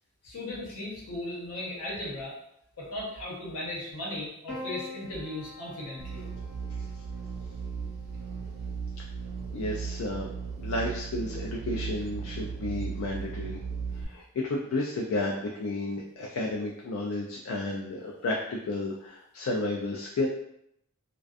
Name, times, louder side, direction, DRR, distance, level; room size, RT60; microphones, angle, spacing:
voice 1, 0.2-2.4 2.8-6.3, left 1 dB, 80° left, -5 dB, 1.0 m, -37 dB
Piano, 4.5-8.9 10.1-10.8, left 2 dB, 45° left, 1.0 m, -46 dB
sound 1, 6.0-14.0, right 5 dB, 45° right, 0.3 m, -36 dB
voice 2, 9.5-10.3 10.6-13.6 13.9-20.3, left 2 dB, 65° left, -2 dB, 0.3 m, -32 dB
2.4 x 2.3 x 2.4 m, 0.76 s
head